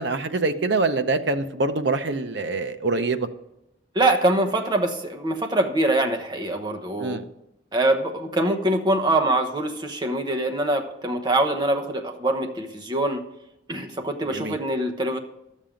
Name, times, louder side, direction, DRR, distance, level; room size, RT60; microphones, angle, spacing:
voice 1, 0.0-3.3 7.0-7.2 14.3-14.6, right 3 dB, 65° right, 8 dB, 0.7 m, -25 dB
voice 2, 3.9-7.2 7.7-13.2 13.7-15.2, right 1 dB, 20° right, 5 dB, 0.9 m, -24 dB
12.0 x 7.4 x 5.1 m, 0.88 s
head